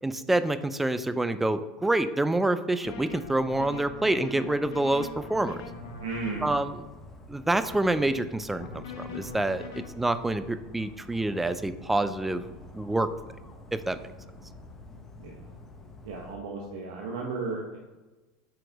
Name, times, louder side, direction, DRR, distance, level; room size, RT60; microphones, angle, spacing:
voice 1, 0.0-5.6 6.4-6.8 7.3-12.4 12.7-13.1 13.7-14.0, right 2 dB, 10° right, 12 dB, 0.3 m, -27 dB
sound 1, 2.8-6.6 8.6-9.9, left 4 dB, 75° left, 1.0 m, -41 dB
Dog, 4.9-16.4, left 1 dB, 15° left, 0.7 m, -48 dB
voice 2, 6.0-6.5 15.2-15.5 16.0-17.8, right 4 dB, 80° right, -1 dB, 0.9 m, -34 dB
4.9 x 4.3 x 5.1 m, 1.1 s
supercardioid pair, 105°, 2 cm